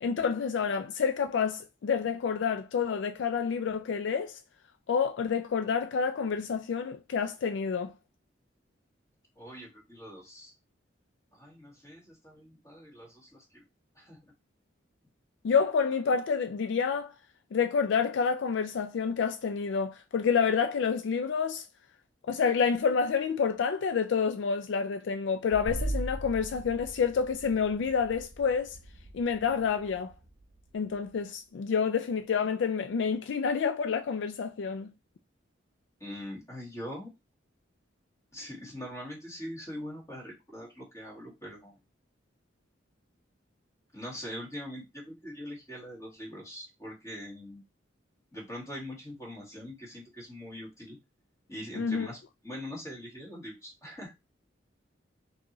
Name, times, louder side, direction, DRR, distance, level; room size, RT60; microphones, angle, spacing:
voice 1, 0.0-4.4 4.9-7.9 15.4-17.1 17.5-21.6 22.2-28.8 29.1-30.1 30.7-34.9 51.7-52.1, left 6 dB, 70° left, 0.3 m, -28 dB
voice 2, 9.3-10.5 11.3-13.6 13.9-14.2 36.0-37.1 38.3-41.8 43.9-47.6 48.3-51.0 51.5-52.2 52.4-54.1, equal, 15° left, 1.7 m, -42 dB
sound 1, 25.5-31.1, right 1 dB, 70° right, 0.8 m, -39 dB
4.3 x 2.8 x 3.0 m
head